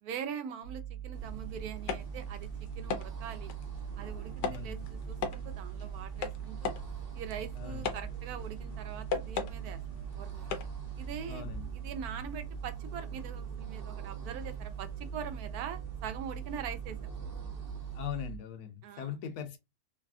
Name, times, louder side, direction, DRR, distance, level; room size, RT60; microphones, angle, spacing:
voice 1, 0.0-2.5 2.8-3.5 4.0-6.8 7.1-9.8 10.2-10.4 11.0-11.5 11.7-17.0 18.8-19.1, right 8 dB, 70° right, 1.0 m, -43 dB
sound 1, 0.6-18.4, right 11 dB, 50° left, 1.0 m, -42 dB
sound 2, 1.1-18.1, equal, 55° right, 0.6 m, -47 dB
sound 3, 1.8-11.1, left 5 dB, 85° left, 1.2 m, -40 dB
voice 2, 4.4-4.8 7.6-7.9 11.3-11.7 17.9-19.6, left 9 dB, 70° left, 1.2 m, -40 dB
3.2 x 2.5 x 2.3 m
omnidirectional pair, 1.8 m